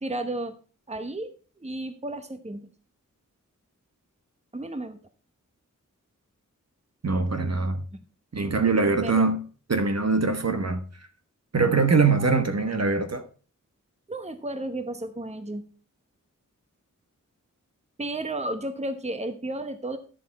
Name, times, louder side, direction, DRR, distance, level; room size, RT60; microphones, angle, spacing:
voice 1, 0.0-0.5 0.9-1.3 1.6-2.7 4.5-5.0 9.0-9.3 12.2-12.3 14.1-15.6 18.0-20.0, right 1 dB, 20° right, 1.0 m, -33 dB
voice 2, 7.0-7.8 8.3-9.4 9.7-10.8 11.5-13.3, right 4 dB, 50° right, 1.3 m, -23 dB
10.5 x 7.0 x 4.2 m
wide cardioid pair, 55°, 32 cm